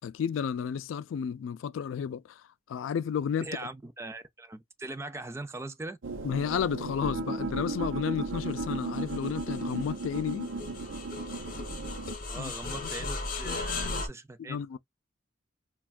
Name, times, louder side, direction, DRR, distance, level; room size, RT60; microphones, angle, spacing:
voice 1, 0.0-2.4 2.7-3.5 6.2-10.5 12.4-12.5 13.5-14.0 14.4-14.8, left 7 dB, 85° left, 0.3 m, -32 dB
voice 2, 3.4-6.0 12.3-14.6, right 2 dB, 15° right, 0.4 m, -40 dB
sound 1, 6.0-12.2, right 3 dB, 85° right, 0.7 m, -35 dB
sound 2, 8.4-14.1, left 3 dB, 45° left, 0.8 m, -37 dB
4.1 x 2.3 x 2.2 m
head